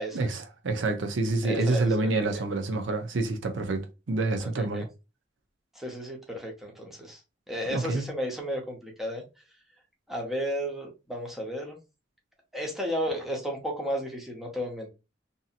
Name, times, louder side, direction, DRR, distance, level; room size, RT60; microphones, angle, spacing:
voice 1, 0.1-3.8 4.1-4.9 7.7-8.0, right 2 dB, 85° right, 0.6 m, -27 dB
voice 2, 1.4-2.4 4.6-4.8 5.7-7.2 7.5-9.2 10.1-11.8 12.5-14.9, equal, ahead, 0.7 m, -33 dB
2.7 x 2.7 x 2.4 m
head